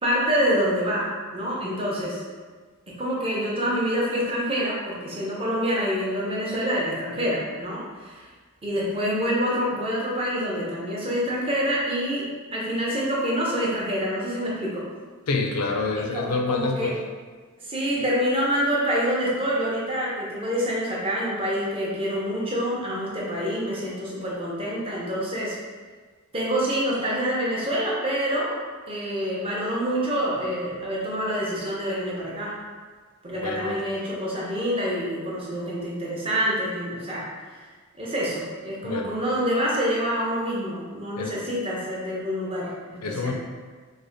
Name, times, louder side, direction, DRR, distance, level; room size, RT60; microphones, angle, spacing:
voice 1, 0.0-2.2 2.9-8.3 8.6-14.8 16.1-16.9 17.6-25.6 26.3-28.6 28.9-32.6 33.2-37.2 38.0-43.3, equal, 25° right, -5 dB, 0.7 m, -26 dB
voice 2, 15.3-17.0 33.4-33.8 38.8-39.2 41.2-41.3 43.0-43.3, left 3 dB, 85° left, 2 dB, 0.5 m, -27 dB
3.3 x 2.1 x 3.9 m, 1.5 s
head